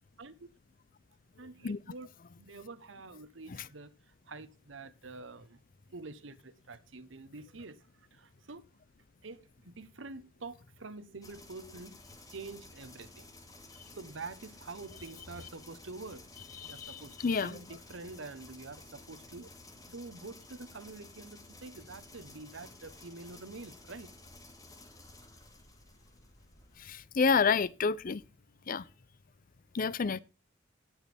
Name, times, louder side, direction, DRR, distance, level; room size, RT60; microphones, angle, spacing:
voice 1, 1.4-2.1 2.4-3.9 4.3-5.6 5.9-8.6 9.2-12.0 12.3-13.3 13.9-19.5 19.9-24.1, right 3 dB, 80° right, 1.0 m, -47 dB
sound 1, 11.2-27.0, left 2 dB, 20° left, 2.3 m, -54 dB
voice 2, 16.6-17.6 26.8-28.2 28.7-28.8 29.7-30.2, left 5 dB, 45° left, 0.5 m, -29 dB
17.0 x 6.3 x 3.4 m
head